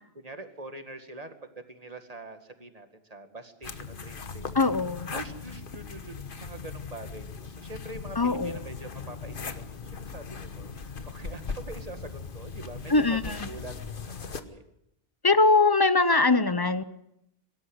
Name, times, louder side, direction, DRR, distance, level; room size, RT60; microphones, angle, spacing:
voice 1, 0.1-4.6 5.1-14.6, right 2 dB, 35° right, 7 dB, 2.1 m, -44 dB
sound 1, 3.6-14.4, left 5 dB, 55° left, 1.3 m, -39 dB
voice 2, 4.5-5.1 8.2-8.6 12.9-13.2 15.2-16.8, left 3 dB, 25° left, 14 dB, 0.8 m, -22 dB
23.5 x 13.0 x 9.8 m, 0.81 s
omnidirectional pair, 1.1 m